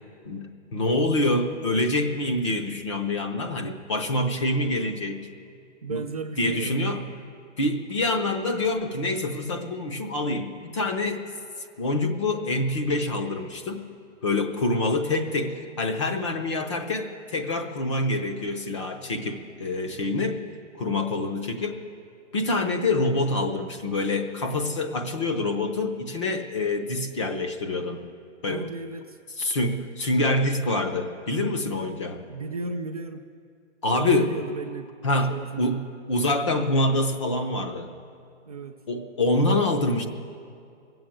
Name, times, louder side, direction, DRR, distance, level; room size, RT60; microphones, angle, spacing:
voice 1, 0.3-5.3 5.9-6.0 6.4-7.0 7.6-11.2 11.8-13.9 14.2-20.4 20.8-21.8 22.3-28.0 28.4-28.7 29.4-32.2 33.8-34.3 35.0-35.8 36.1-37.9 38.9-40.1, left 2 dB, 25° left, 5 dB, 0.6 m, -26 dB
voice 2, 5.8-7.2 28.5-29.2 32.3-33.2 34.0-34.9 35.2-35.9 38.4-38.8, right 3 dB, 30° right, 4 dB, 0.5 m, -35 dB
19.0 x 7.8 x 8.5 m, 2.3 s
hypercardioid pair, 160°, 37 cm